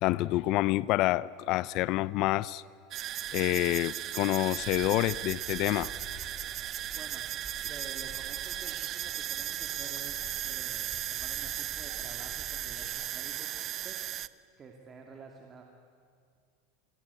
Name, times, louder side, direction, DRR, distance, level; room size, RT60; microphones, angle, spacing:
voice 1, 0.0-2.6 3.3-5.9, left 17 dB, 55° left, 0.6 m, -28 dB
sound 1, 2.9-14.3, right 12 dB, 40° right, 0.7 m, -36 dB
sound 2, 4.6-12.9, left 1 dB, 10° right, 7.4 m, -51 dB
voice 2, 6.9-7.2 7.6-15.6, right 4 dB, 25° right, 2.5 m, -50 dB
28.0 x 22.5 x 8.4 m
supercardioid pair, 115°, 0 cm